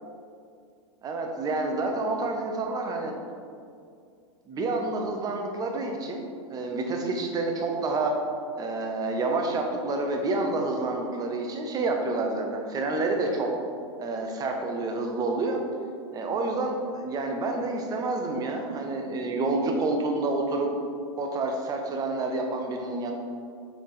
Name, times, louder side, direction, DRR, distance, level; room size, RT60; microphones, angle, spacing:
voice 1, 1.0-3.1 4.5-8.1 8.6-13.5 14.0-15.6 16.1-20.7 21.2-23.1, right 2 dB, 20° right, 3 dB, 0.7 m, -28 dB
6.3 x 4.1 x 3.6 m, 2.3 s
hypercardioid pair, 130°, 17 cm